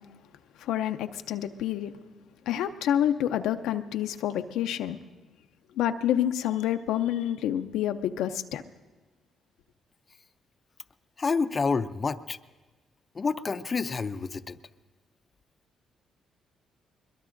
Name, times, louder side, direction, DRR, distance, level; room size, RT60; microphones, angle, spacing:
voice 1, 0.6-1.9 2.5-5.0 5.8-8.6, left 11 dB, 90° left, 0.5 m, -28 dB
voice 2, 11.2-12.4 13.1-14.6, left 4 dB, 35° left, 0.5 m, -28 dB
22.5 x 21.5 x 2.6 m
cardioid pair, 90°, 0 cm